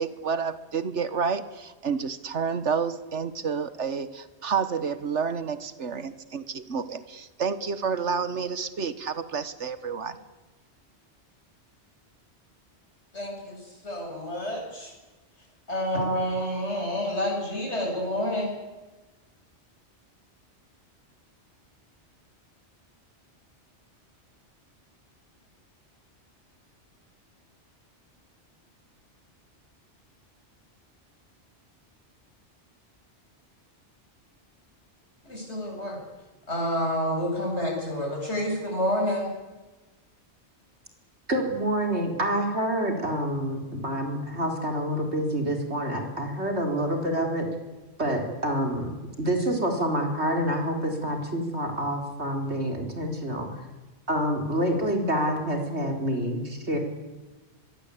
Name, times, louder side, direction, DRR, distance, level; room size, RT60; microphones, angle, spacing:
voice 1, 0.0-10.2, right 6 dB, 85° right, 12 dB, 1.7 m, -29 dB
voice 2, 13.1-14.9 15.7-18.5 35.2-36.0 36.5-39.3, equal, 75° left, 0 dB, 8.3 m, -29 dB
voice 3, 41.3-47.5 48.0-48.9 49.2-53.5 54.1-56.8, equal, 70° right, 3 dB, 4.6 m, -27 dB
24.5 x 22.5 x 8.5 m, 1.2 s
omnidirectional pair, 1.2 m